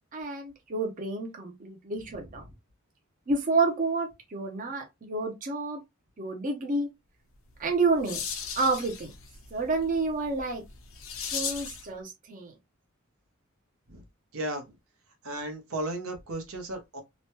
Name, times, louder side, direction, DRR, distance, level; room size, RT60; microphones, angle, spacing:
voice 1, 0.1-2.4 3.3-5.8 6.2-6.9 7.6-8.2 8.6-9.1 9.5-10.6 11.3-12.5, right 3 dB, 40° right, 0.6 m, -29 dB
sound 1, 7.5-11.9, left 6 dB, 70° left, 0.8 m, -38 dB
voice 2, 14.3-14.6 15.2-17.0, right 1 dB, 85° right, 0.8 m, -34 dB
3.0 x 2.1 x 2.9 m
head